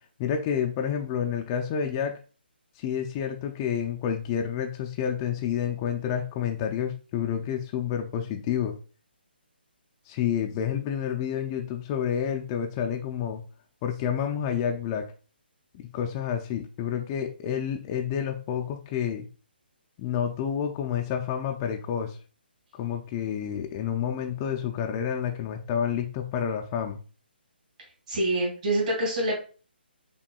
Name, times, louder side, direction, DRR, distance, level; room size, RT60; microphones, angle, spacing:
voice 1, 0.2-2.2 2.8-8.7 10.1-13.4 13.8-15.1 15.7-19.3 20.0-22.2 22.7-27.0, left 8 dB, 25° left, 3 dB, 0.3 m, -29 dB
voice 2, 28.1-29.4, right 1 dB, 45° right, -2 dB, 2.0 m, -26 dB
5.8 x 2.2 x 2.2 m, 0.37 s
figure-of-eight pair, 145°, 6 cm